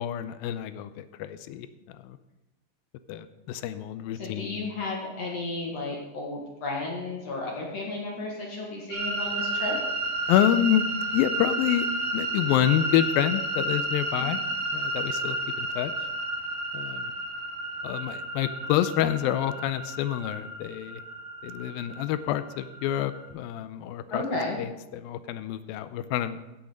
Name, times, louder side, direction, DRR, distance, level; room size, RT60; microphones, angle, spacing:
voice 1, 0.0-1.7 2.0-2.2 3.1-4.6 10.3-11.9 12.1-14.4 14.7-15.9 16.7-17.1 17.8-21.0 21.4-24.2 24.6-26.4, left 11 dB, 80° left, 12 dB, 2.2 m, -27 dB
voice 2, 4.1-9.8 24.1-24.6, left 2 dB, 50° left, -2 dB, 2.5 m, -33 dB
sound 1, 8.9-23.2, right 2 dB, 80° right, 4.8 m, -32 dB
16.0 x 6.3 x 5.1 m, 1.0 s
omnidirectional pair, 4.5 m